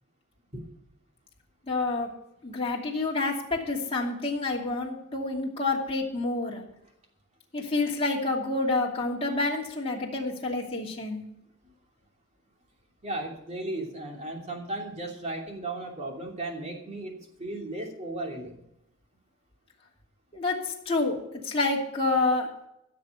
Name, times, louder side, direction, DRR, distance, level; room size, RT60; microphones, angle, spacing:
voice 1, 1.7-2.1 2.4-6.6 7.5-11.2 20.3-21.1 21.4-22.5, left 3 dB, 30° left, -3 dB, 2.7 m, -28 dB
voice 2, 13.0-18.6, right 2 dB, 35° right, 1 dB, 2.9 m, -35 dB
16.0 x 6.8 x 6.9 m, 0.82 s
head